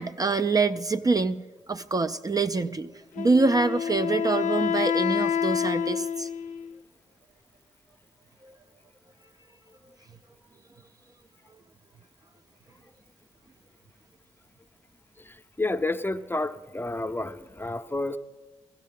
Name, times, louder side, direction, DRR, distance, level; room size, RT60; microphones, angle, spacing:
voice 1, 0.0-1.4 1.7-2.9 3.2-6.3 8.4-8.6, right 3 dB, 30° right, 8 dB, 0.4 m, -25 dB
Wind instrument woodwind instrument, 3.1-6.8, left 8 dB, 70° left, 0.5 m, -28 dB
voice 2, 15.2-18.2, left 2 dB, 15° left, 9 dB, 0.6 m, -30 dB
15.0 x 14.0 x 3.7 m, 1.3 s
supercardioid pair, 45°, 13 cm